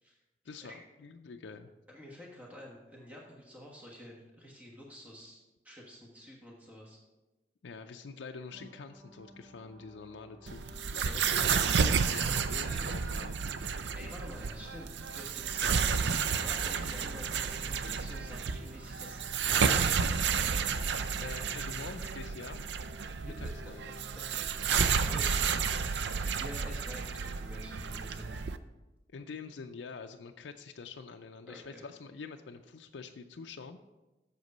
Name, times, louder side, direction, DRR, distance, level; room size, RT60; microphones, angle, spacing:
voice 1, 0.4-1.7 7.6-10.6 10.9-11.7 12.1-13.4 21.2-22.6 23.2-23.9 29.1-33.8, left 4 dB, 85° left, 5 dB, 0.4 m, -46 dB
voice 2, 1.9-7.0 11.0-11.5 12.5-12.6 13.9-15.9 16.3-19.2 19.5-20.5 24.1-25.5 26.3-28.4 31.4-31.8, equal, 10° right, -2 dB, 1.3 m, -49 dB
sound 1, 8.5-20.5, equal, 25° right, 1.7 m, -56 dB
sound 2, 10.5-28.6, right 6 dB, 75° right, 0.5 m, -31 dB
7.9 x 6.8 x 5.3 m, 1.1 s
head